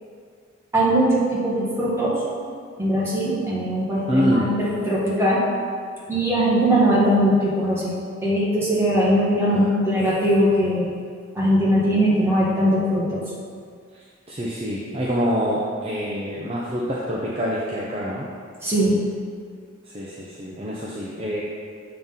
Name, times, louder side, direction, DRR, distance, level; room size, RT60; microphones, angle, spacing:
voice 1, 0.7-2.2 2.8-5.4 6.1-7.9 8.2-10.9 11.3-13.2 18.6-19.0, equal, 15° right, -7 dB, 1.5 m, -20 dB
voice 2, 4.1-4.5 9.5-9.7 13.9-18.2 19.9-21.4, equal, 30° right, -5 dB, 0.6 m, -26 dB
7.6 x 3.7 x 5.6 m, 2.1 s
head